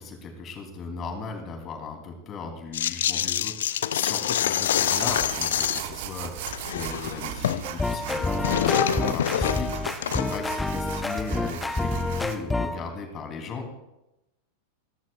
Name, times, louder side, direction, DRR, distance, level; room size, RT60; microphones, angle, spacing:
voice 1, 0.0-13.7, left 4 dB, 30° left, 4 dB, 3.1 m, -37 dB
sound 1, 2.7-5.9 6.2-7.7 7.9-10.5, left 10 dB, 60° left, 0.5 m, -26 dB
sound 2, 4.8-12.4, right 11 dB, 50° right, 1.1 m, -38 dB
sound 3, 7.6-12.8, left 2 dB, 10° left, 0.8 m, -28 dB
28.5 x 14.0 x 2.4 m, 0.92 s
figure-of-eight pair, 90°, 0 cm